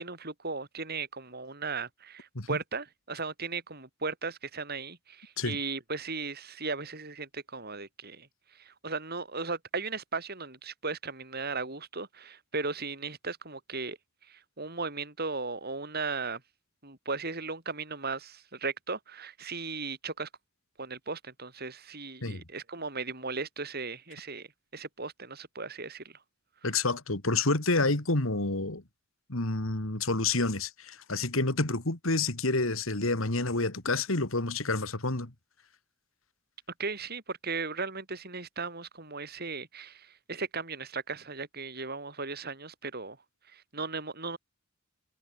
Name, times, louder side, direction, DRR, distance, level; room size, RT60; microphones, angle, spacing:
voice 1, 0.0-8.3 8.6-14.0 14.3-16.4 16.8-20.3 20.8-24.5 24.7-26.1 36.8-43.2 43.5-44.4, right 4 dB, 50° right, 7.2 m, -36 dB
voice 2, 26.6-28.8 29.3-35.3, left 3 dB, 80° left, 2.9 m, -29 dB
head